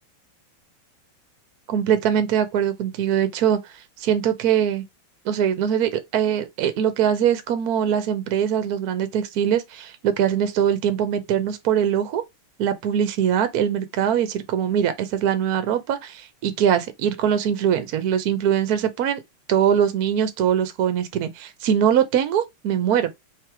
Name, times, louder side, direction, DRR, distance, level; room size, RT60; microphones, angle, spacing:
voice 1, 1.7-3.6 4.0-4.8 5.2-12.2 12.6-19.2 19.5-23.1, right 9 dB, 65° right, 0.9 m, -22 dB
3.3 x 3.3 x 4.6 m
omnidirectional pair, 2.4 m